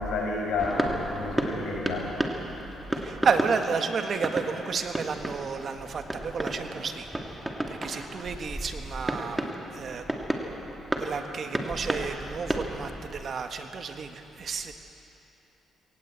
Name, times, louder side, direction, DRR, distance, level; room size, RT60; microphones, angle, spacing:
voice 1, 0.0-2.1 2.6-2.8, left 3 dB, 80° left, -2 dB, 6.9 m, -30 dB
sound 1, 0.6-13.3, right 1 dB, 10° right, 2.3 m, -33 dB
voice 2, 2.9-7.4 7.7-10.0 11.0-14.7, right 5 dB, 50° right, 6 dB, 1.7 m, -31 dB
21.0 x 18.0 x 8.4 m, 2.9 s
cardioid pair, 90°, 0 cm